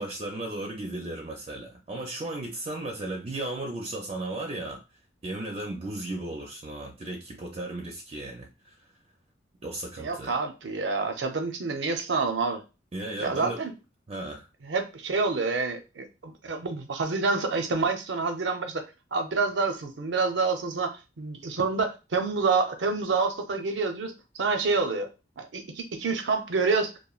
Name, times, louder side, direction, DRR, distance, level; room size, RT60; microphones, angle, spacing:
voice 1, 0.0-4.8 5.2-8.8 9.6-10.3 12.9-13.6 14.1-14.5, right 2 dB, 35° right, 0.4 m, -35 dB
voice 2, 10.0-12.6 13.2-13.7 14.7-25.1 25.4-26.9, right 4 dB, 85° right, 0.5 m, -28 dB
3.0 x 2.1 x 2.3 m
head